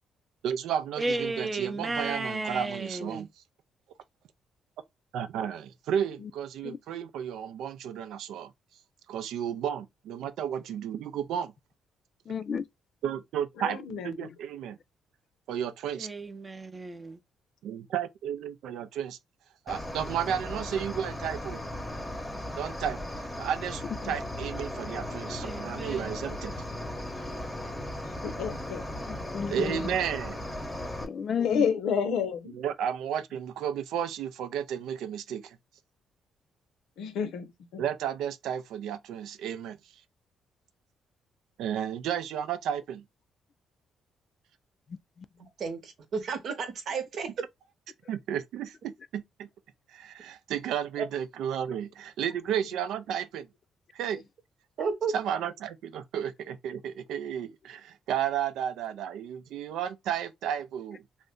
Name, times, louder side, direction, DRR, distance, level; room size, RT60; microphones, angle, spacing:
voice 1, 0.4-3.3 5.1-8.5 9.1-11.5 13.0-13.8 14.0-14.8 15.5-16.1 17.6-19.2 19.7-21.6 22.6-26.5 29.5-30.5 32.5-35.6 37.8-39.8 41.6-43.0 48.1-49.5 49.9-53.5 53.9-54.2 55.1-61.0, right 9 dB, 85° right, 0.4 m, -33 dB
voice 2, 1.0-3.3 16.0-17.2 25.4-26.1, right 2 dB, 20° right, 0.6 m, -34 dB
voice 3, 12.3-12.6 24.0-24.1 29.1-29.9 31.0-31.6, left 7 dB, 50° left, 0.3 m, -32 dB
voice 4, 13.6-14.3 28.2-28.8 31.4-32.5 37.0-37.8, left 7 dB, 85° left, 0.6 m, -30 dB
Cricket, 19.7-31.1, left 1 dB, 10° left, 0.8 m, -37 dB
voice 5, 45.4-47.3 51.0-51.1 54.8-55.2, right 5 dB, 65° right, 0.9 m, -32 dB
2.6 x 2.1 x 3.6 m
cardioid pair, 90°, 0 cm